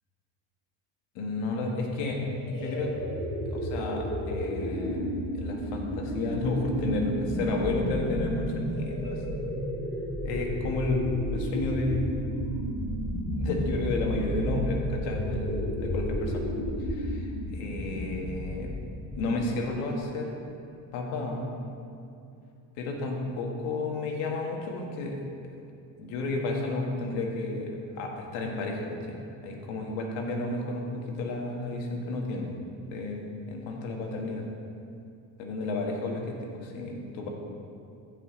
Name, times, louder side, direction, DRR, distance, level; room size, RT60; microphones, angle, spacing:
voice 1, 1.2-2.2 2.5-3.0 3.5-5.1 5.4-9.5 10.2-12.3 13.2-16.5 16.8-18.7 19.1-20.3 20.9-21.5 22.8-25.3 26.0-29.2 29.4-32.5 32.9-34.5 35.4-37.3, left 2 dB, 85° left, 1 dB, 1.7 m, -32 dB
sound 1, 1.9-19.3, equal, 25° left, 1.9 m, -32 dB
15.0 x 5.5 x 3.9 m, 2.5 s
supercardioid pair, 100°, 46 cm